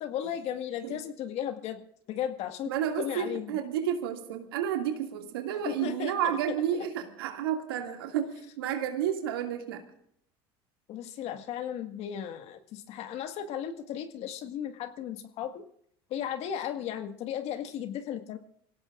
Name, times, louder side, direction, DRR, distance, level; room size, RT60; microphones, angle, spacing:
voice 1, 0.0-1.8 2.1-3.6 5.7-6.9 10.9-15.7 16.1-18.4, left 9 dB, 60° left, 7 dB, 1.7 m, -35 dB
voice 2, 2.7-8.3 8.6-9.8, right 9 dB, 85° right, 4 dB, 2.3 m, -31 dB
27.0 x 17.0 x 2.5 m, 0.67 s
hypercardioid pair, 85°, 12 cm